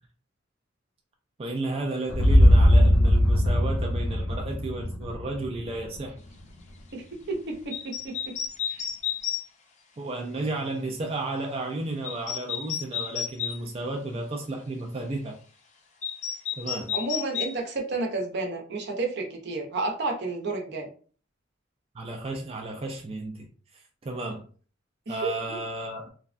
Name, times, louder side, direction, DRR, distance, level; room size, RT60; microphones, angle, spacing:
voice 1, 1.4-6.2 10.0-15.4 16.6-17.0 21.9-23.5 24.0-24.4 25.1-26.1, right 2 dB, 30° right, 2 dB, 0.4 m, -33 dB
sound 1, 2.1-6.1, equal, 85° left, 0.6 m, -20 dB
voice 2, 6.9-8.4 8.7-8.8 16.9-20.9 25.1-25.6, right 3 dB, 60° right, 2 dB, 0.7 m, -31 dB
sound 2, 7.7-9.4 12.0-13.6 16.0-17.6, left 9 dB, 40° left, 0.5 m, -31 dB
3.3 x 2.1 x 2.5 m, 0.41 s
head